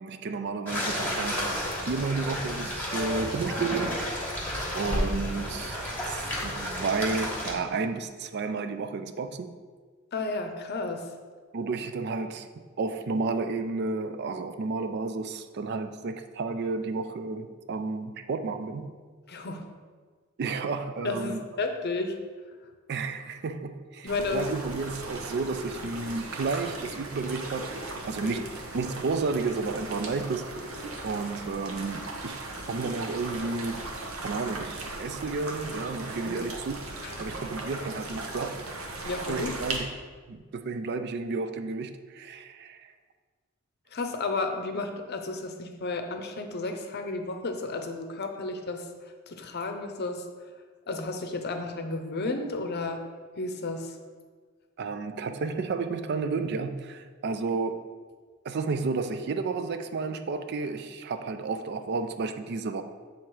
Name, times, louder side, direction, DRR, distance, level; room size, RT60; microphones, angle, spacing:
voice 1, 0.0-1.5 1.9-4.0 4.7-5.8 6.1-9.5 11.5-19.0 20.4-21.5 22.9-27.8 28.0-30.7 31.0-32.4 32.7-33.9 34.2-36.7 37.2-38.8 39.3-39.9 40.3-42.9 54.8-57.9 58.4-62.8, right 4 dB, 55° right, 8 dB, 0.4 m, -32 dB
sound 1, 0.7-7.5, equal, 10° left, 1.2 m, -31 dB
voice 2, 10.1-11.1 19.3-19.6 21.0-22.2 24.0-24.5 28.2-28.4 36.3-36.5 37.0-37.3 39.0-39.5 43.9-48.9 49.3-50.2 50.9-53.0 53.4-54.0, left 3 dB, 50° left, 5 dB, 0.6 m, -32 dB
sound 2, 24.1-39.8, right 2 dB, 85° right, 1.0 m, -38 dB
7.6 x 3.6 x 4.7 m, 1.5 s
head